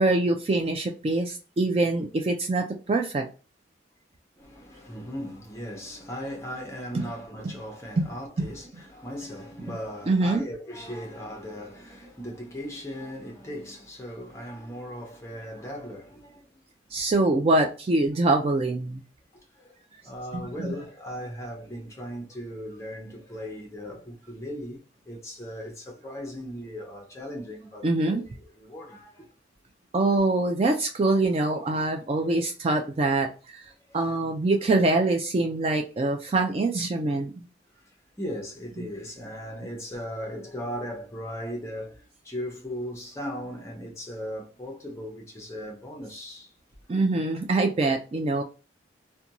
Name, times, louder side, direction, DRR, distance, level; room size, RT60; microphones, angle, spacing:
voice 1, 0.0-3.3 6.9-7.0 7.4-7.5 8.0-8.1 8.4-8.5 10.1-10.4 16.9-19.0 20.3-20.7 27.8-28.2 29.9-33.6 33.9-37.5 46.9-48.4, right 2 dB, 30° right, 0.3 m, -24 dB
voice 2, 4.4-17.0 19.3-29.3 33.9-34.2 37.7-37.9 38.2-46.5, equal, 15° left, 0.7 m, -38 dB
2.5 x 2.2 x 2.8 m
head